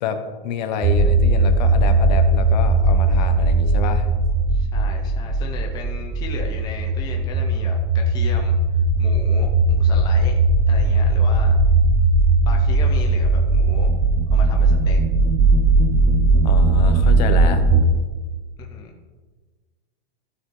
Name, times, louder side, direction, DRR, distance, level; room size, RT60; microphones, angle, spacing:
voice 1, 0.0-4.1 16.4-17.7, left 7 dB, 45° left, 8 dB, 1.1 m, -28 dB
sound 1, 0.8-17.9, right 2 dB, 10° right, 0.3 m, -18 dB
voice 2, 4.5-10.4 10.7-11.5 12.4-13.9 14.3-15.0 18.6-18.9, left 4 dB, 15° left, 1 dB, 0.7 m, -36 dB
15.5 x 6.5 x 3.9 m, 1.4 s
supercardioid pair, 160°, 31 cm